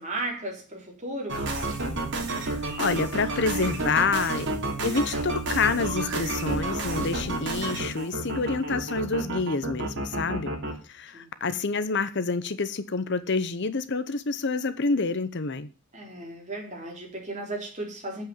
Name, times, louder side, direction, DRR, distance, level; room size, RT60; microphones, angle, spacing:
voice 1, 0.0-1.5 11.1-11.3 15.9-18.2, right 2 dB, 30° right, 3.9 m, -35 dB
sound 1, 1.3-10.7, right 2 dB, 55° right, 2.9 m, -30 dB
voice 2, 2.4-4.5 4.8-10.5 10.9-15.7, left 4 dB, 50° left, 0.8 m, -28 dB
8.9 x 7.9 x 7.2 m
head